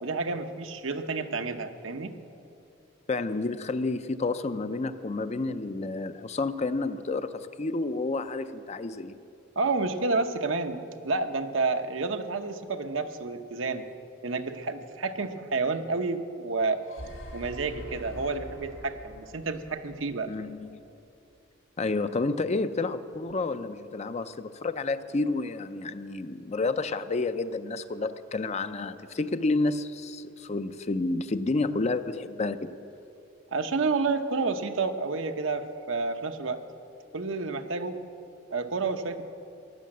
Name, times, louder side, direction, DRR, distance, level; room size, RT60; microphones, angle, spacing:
voice 1, 0.0-2.1 9.6-13.8 14.2-16.8 17.3-20.3 33.5-36.6 37.1-38.0 38.5-39.2, right 3 dB, 80° right, 7 dB, 0.9 m, -30 dB
voice 2, 3.1-9.2 20.3-20.8 21.8-32.8, left 3 dB, 35° left, 11 dB, 0.5 m, -30 dB
sound 1, 16.8-20.8, equal, 90° left, 3.1 m, -45 dB
14.5 x 11.0 x 7.5 m, 2.7 s
head